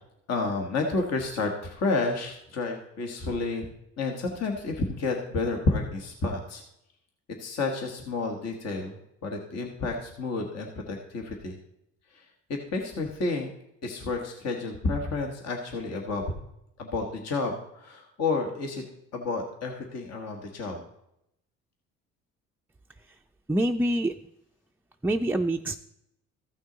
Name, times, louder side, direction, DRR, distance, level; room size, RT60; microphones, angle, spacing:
voice 1, 0.3-3.7 4.0-6.6 7.4-9.0 9.2-11.5 12.1-12.3 12.7-13.5 13.8-16.2 16.8-18.8 19.1-20.8, left 3 dB, 60° left, 2 dB, 1.5 m, -30 dB
voice 2, 23.5-24.1 25.0-25.8, right 1 dB, 5° right, 2 dB, 0.4 m, -25 dB
14.5 x 6.0 x 3.9 m, 0.79 s
supercardioid pair, 75°, 29 cm